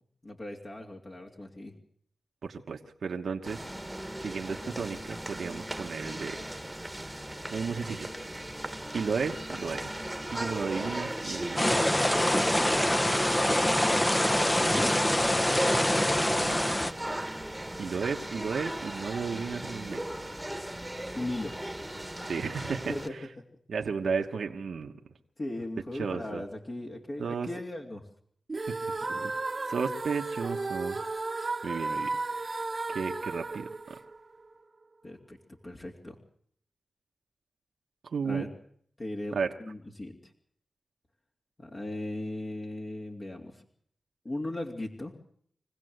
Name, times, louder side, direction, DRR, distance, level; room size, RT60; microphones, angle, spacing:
voice 1, 0.2-1.8 14.6-15.1 21.1-21.6 22.9-23.5 25.4-28.0 35.0-35.4 35.6-36.2 38.2-38.5 39.0-40.3 41.6-43.6 44.2-45.1, left 1 dB, 45° left, -1 dB, 3.1 m, -37 dB
voice 2, 2.4-3.7 4.2-6.4 7.5-8.1 8.9-10.0 10.3-11.8 16.3-16.7 17.8-20.1 22.2-23.2 23.7-24.9 26.0-26.4 27.2-27.5 28.7-29.3 29.7-31.0 31.6-32.1 32.5-32.6 32.9-34.0 38.0-38.4 39.3-39.5, right 5 dB, 75° right, 3 dB, 1.3 m, -34 dB
sound 1, 3.4-23.1, right 1 dB, 10° right, 1.6 m, -37 dB
sound 2, 11.6-16.9, left 1 dB, 15° left, 1.1 m, -25 dB
sound 3, 28.5-34.6, right 3 dB, 45° right, 1.2 m, -34 dB
25.0 x 16.5 x 8.0 m, 0.64 s
cardioid pair, 45°, 0 cm